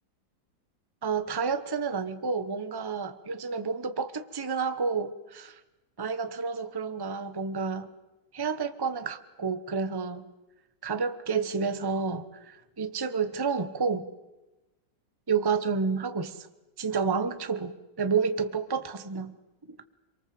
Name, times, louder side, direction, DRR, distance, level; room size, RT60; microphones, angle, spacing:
voice 1, 1.0-5.6 6.0-7.9 8.3-10.2 10.8-14.1 15.3-16.5 16.8-19.3 19.7-19.8, right 5 dB, 15° right, 10 dB, 1.0 m, -30 dB
27.5 x 23.5 x 7.9 m, 1.1 s
omnidirectional pair, 2.1 m